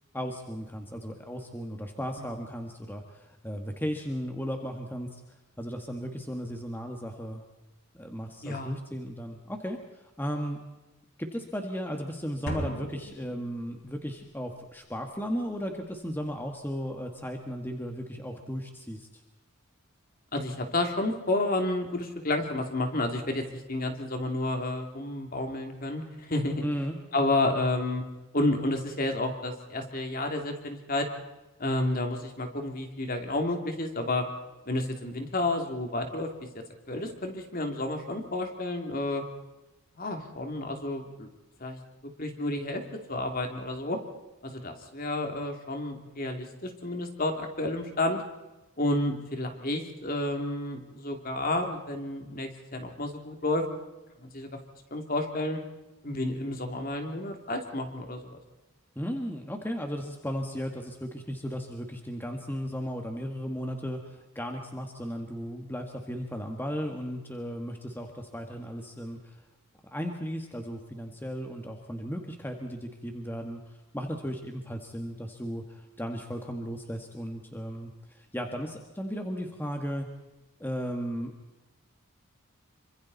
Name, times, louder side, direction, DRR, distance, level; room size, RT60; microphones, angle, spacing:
voice 1, 0.1-5.2 5.6-7.4 7.9-10.6 11.2-19.1 26.6-27.0 59.0-69.4 69.9-80.1 80.6-81.3, equal, 10° left, 3 dB, 1.7 m, -35 dB
voice 2, 8.4-8.8 20.3-26.6 27.1-28.0 28.3-31.1 31.6-34.3 34.7-36.3 36.9-39.2 39.9-41.3 41.6-41.8 42.2-42.8 43.1-44.0 44.4-48.2 48.8-53.6 54.2-54.5 54.9-55.6 56.0-58.4, left 2 dB, 40° left, 4 dB, 2.9 m, -30 dB
sound 1, 12.5-14.1, equal, 55° left, 4.1 m, -38 dB
26.5 x 25.5 x 4.2 m, 1.0 s
head